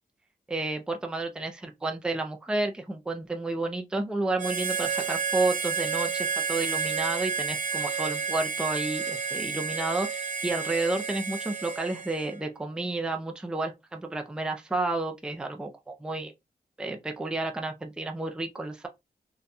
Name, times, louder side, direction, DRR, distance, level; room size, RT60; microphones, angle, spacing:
voice 1, 0.5-16.3 16.8-18.9, right 2 dB, 5° right, 0.4 m, -31 dB
Harmonica, 4.4-12.4, right 6 dB, 55° right, 0.8 m, -31 dB
3.8 x 2.2 x 2.7 m
wide cardioid pair, 140°, 16 cm